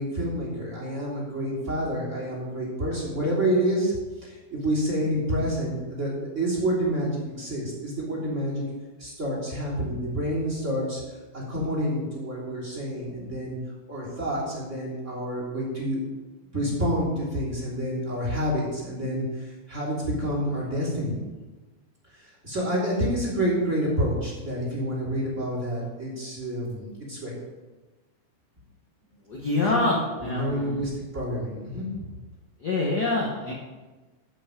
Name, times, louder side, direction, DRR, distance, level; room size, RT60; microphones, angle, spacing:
voice 1, 0.0-3.9 4.2-8.6 9.0-11.0 11.3-13.6 13.9-16.0 16.5-21.2 22.2-27.4 29.6-32.0, equal, 20° right, -5 dB, 3.3 m, -28 dB
voice 2, 29.3-30.8 32.6-33.5, left 2 dB, 60° left, -3 dB, 1.0 m, -26 dB
14.5 x 5.8 x 5.1 m, 1.2 s
omnidirectional pair, 3.9 m